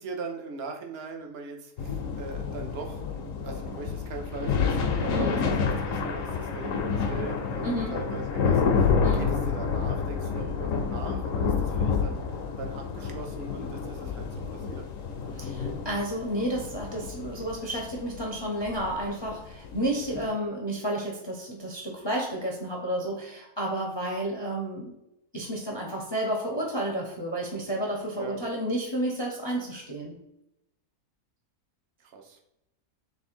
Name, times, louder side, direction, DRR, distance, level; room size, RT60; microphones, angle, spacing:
voice 1, 0.0-3.0 3.4-12.2 12.6-14.9 28.1-28.4 32.0-32.4, right 4 dB, 55° right, 3 dB, 0.8 m, -40 dB
sound 1, 1.8-20.3, left 5 dB, 65° left, 1.0 m, -29 dB
voice 2, 5.1-5.4 7.6-7.9 9.0-9.3 15.3-24.9 25.3-30.2, right 1 dB, 25° left, -1 dB, 0.6 m, -31 dB
3.5 x 3.4 x 4.3 m, 0.84 s
omnidirectional pair, 1.6 m